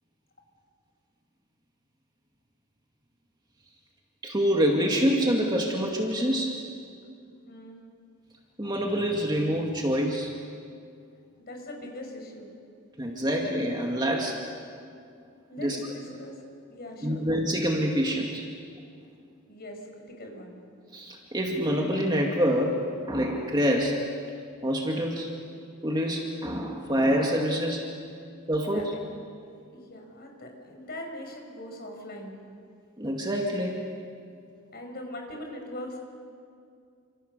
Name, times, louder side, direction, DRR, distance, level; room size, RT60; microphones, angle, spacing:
voice 1, 4.2-6.7 8.6-10.3 13.0-14.4 15.6-15.8 17.0-18.4 20.9-24.1 24.6-25.4 25.8-27.9 28.5-28.9 33.0-33.8, equal, 20° right, 0 dB, 2.2 m, -26 dB
voice 2, 7.4-7.8 11.4-12.5 15.5-16.4 16.7-17.3 19.5-20.6 28.7-29.1 29.7-32.4 34.7-36.0, left 1 dB, 50° left, 2 dB, 5.7 m, -41 dB
29.5 x 27.0 x 6.9 m, 2.3 s
head